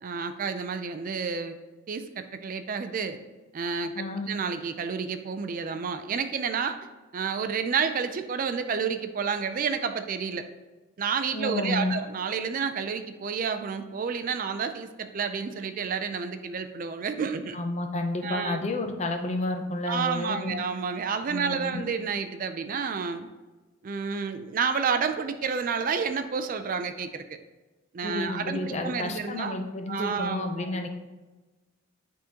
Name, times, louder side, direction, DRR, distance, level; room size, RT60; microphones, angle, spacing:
voice 1, 0.0-1.5 1.9-3.2 3.5-6.8 7.1-10.4 11.0-17.6 18.2-18.6 19.9-23.3 23.8-27.4 27.9-29.6 29.9-30.7, right 6 dB, 40° right, 8 dB, 0.4 m, -30 dB
voice 2, 3.9-4.3 11.3-12.0 17.5-20.6 21.3-21.8 28.0-30.9, left 2 dB, 35° left, 5 dB, 0.6 m, -30 dB
9.8 x 3.7 x 2.8 m, 1.2 s
head